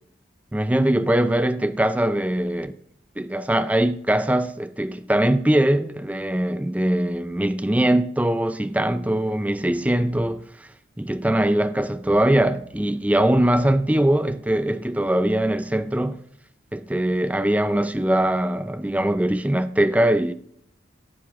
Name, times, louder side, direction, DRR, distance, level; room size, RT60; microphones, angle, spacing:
voice 1, 0.5-2.7 3.2-10.7 11.0-16.2 16.7-20.3, right 1 dB, 10° right, 0.4 m, -22 dB
12.5 x 8.0 x 3.6 m
head